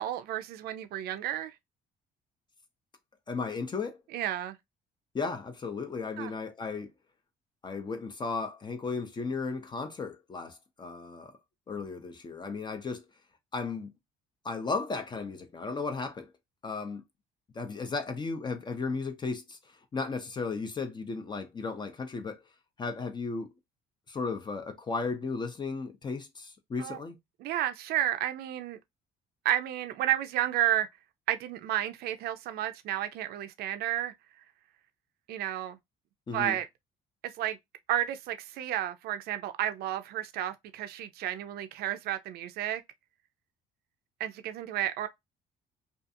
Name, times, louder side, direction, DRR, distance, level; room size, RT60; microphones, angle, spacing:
voice 1, 0.0-1.5 4.1-4.6 6.2-6.3 26.8-27.0 27.4-28.8 29.4-30.9 31.3-34.1 35.3-35.8 36.3-36.6 37.2-37.6 37.9-42.8 44.2-45.1, right 12 dB, 70° right, 0.4 m, -31 dB
voice 2, 3.3-4.0 5.1-6.9 7.6-11.3 11.7-13.0 13.5-13.9 14.4-16.3 16.6-17.0 17.5-22.4 22.8-23.5 24.1-27.2 36.3-36.6, left 4 dB, 25° left, 0.5 m, -35 dB
2.5 x 2.4 x 2.5 m
cardioid pair, 110°, 17 cm